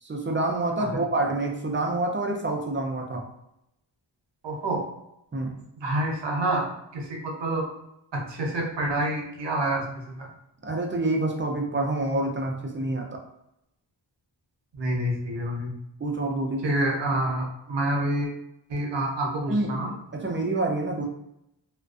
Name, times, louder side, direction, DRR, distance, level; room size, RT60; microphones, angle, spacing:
voice 1, 0.0-3.2 5.3-5.5 10.6-13.2 16.0-16.7 19.5-19.7 20.1-21.1, right 2 dB, 30° right, 1 dB, 0.4 m, -27 dB
voice 2, 4.4-4.8 5.8-6.7 6.9-7.6 8.1-10.3 14.7-15.7 16.6-18.3 18.7-19.9, right 1 dB, 70° right, 0 dB, 0.7 m, -27 dB
2.4 x 2.2 x 2.3 m, 0.83 s
wide cardioid pair, 95°, 44 cm